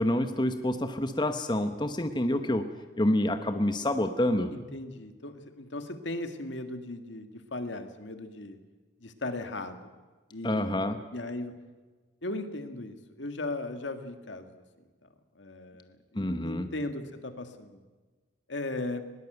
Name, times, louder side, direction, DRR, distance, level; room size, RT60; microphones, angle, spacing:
voice 1, 0.0-2.7 3.0-4.5 10.4-11.0 16.2-16.7, left 1 dB, 25° left, 8 dB, 1.0 m, -27 dB
voice 2, 4.5-8.6 9.0-9.8 10.3-10.7 11.1-11.5 12.2-14.6 15.4-17.8 18.5-19.0, left 2 dB, 75° left, 8 dB, 1.9 m, -37 dB
20.5 x 17.5 x 8.0 m, 1.3 s
head